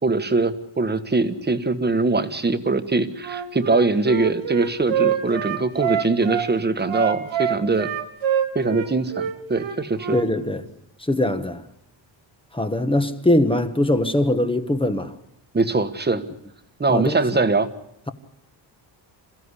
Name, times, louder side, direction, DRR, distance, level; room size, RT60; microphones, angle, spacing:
voice 1, 0.0-7.9 8.5-10.2 15.5-16.2 16.8-17.7, right 3 dB, 20° right, 1.5 m, -22 dB
Wind instrument woodwind instrument, 3.2-6.5 6.8-10.3, right 9 dB, 90° right, 3.4 m, -25 dB
voice 2, 10.1-10.6 11.0-11.6 12.5-15.1 16.9-17.2, left 1 dB, 10° left, 1.4 m, -21 dB
27.5 x 15.5 x 9.9 m
wide cardioid pair, 140°, 45 cm